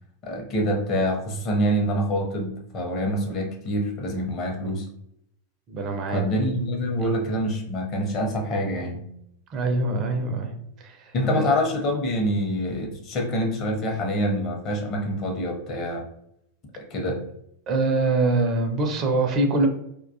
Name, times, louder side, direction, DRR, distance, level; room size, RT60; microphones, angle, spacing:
voice 1, 0.2-4.9 6.1-9.0 11.1-16.0 16.9-17.2, equal, 35° left, 1 dB, 0.6 m, -26 dB
voice 2, 5.7-6.2 7.0-7.1 9.5-11.5 17.7-19.7, right 2 dB, 35° right, 4 dB, 0.4 m, -24 dB
2.2 x 2.2 x 2.6 m, 0.75 s
figure-of-eight pair, 90°, 0 cm